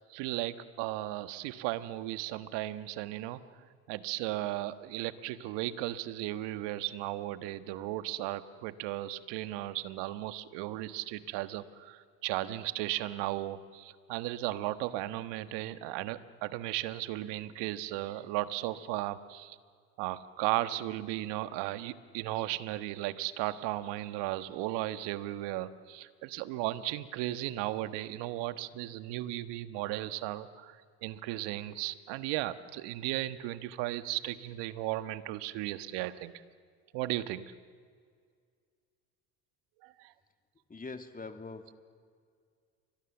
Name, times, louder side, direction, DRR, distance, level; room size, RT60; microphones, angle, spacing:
voice 1, 0.0-19.6 20.0-36.3 36.9-37.5 39.8-40.1, right 15 dB, 65° right, 12 dB, 1.5 m, -36 dB
voice 2, 40.7-41.7, left 3 dB, 20° left, 7 dB, 2.4 m, -43 dB
29.5 x 24.0 x 7.2 m, 2.1 s
hypercardioid pair, 75°, 44 cm